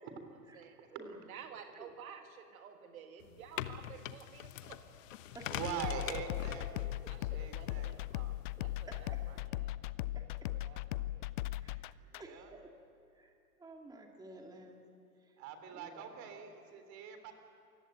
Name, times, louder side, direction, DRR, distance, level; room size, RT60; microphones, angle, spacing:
voice 1, 0.5-4.8 7.1-8.3 8.6-9.7 10.5-11.2, right 8 dB, 60° right, 5 dB, 2.0 m, -53 dB
sound 1, 3.2-9.4, left 12 dB, 55° left, 1.1 m, -45 dB
voice 2, 5.5-6.9 7.3-8.1 12.0-12.5 15.4-17.3, right 6 dB, 35° right, 6 dB, 3.6 m, -43 dB
sound 2, 5.8-12.2, left 16 dB, 35° left, 0.5 m, -38 dB
voice 3, 8.9-9.2 10.1-10.3 11.6-11.9 12.2-12.7 13.1-13.3 13.6-14.8 15.7-16.1, right 2 dB, 10° right, 1 dB, 2.3 m, -52 dB
27.5 x 16.0 x 9.2 m, 2.7 s
hypercardioid pair, 115°, 46 cm